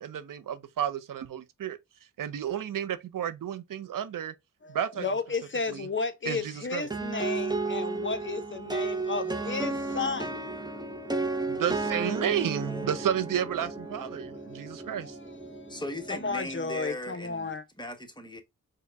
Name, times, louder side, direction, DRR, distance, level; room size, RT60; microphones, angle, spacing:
voice 1, 0.0-1.8 2.2-4.3 4.7-5.0 5.7-5.9 6.3-6.9 11.5-15.2, right 9 dB, 75° right, 0.5 m, -31 dB
voice 2, 4.6-11.6 14.1-15.8 16.1-17.6, left 4 dB, 35° left, 0.6 m, -34 dB
sound 1, 6.9-16.5, right 3 dB, 10° right, 0.7 m, -33 dB
voice 3, 12.6-13.3 15.7-17.5 17.8-18.4, left 1 dB, 15° left, 0.9 m, -38 dB
4.6 x 2.2 x 3.3 m
cardioid pair, 60°, 33 cm